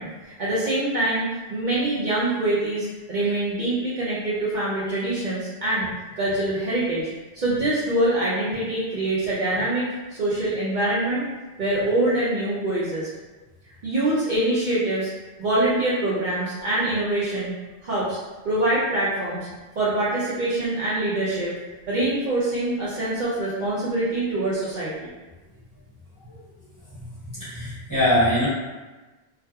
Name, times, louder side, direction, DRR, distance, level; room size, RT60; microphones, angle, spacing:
voice 1, 0.0-5.9 6.2-7.1 7.3-11.2 11.6-13.1 13.8-15.1 15.4-17.5 17.8-18.2 18.4-19.5 19.8-21.5 21.9-24.9, right 1 dB, 55° right, -9 dB, 0.6 m, -24 dB
voice 2, 27.4-28.5, left 1 dB, 20° left, -11 dB, 0.9 m, -22 dB
2.8 x 2.3 x 2.2 m, 1.2 s
omnidirectional pair, 1.1 m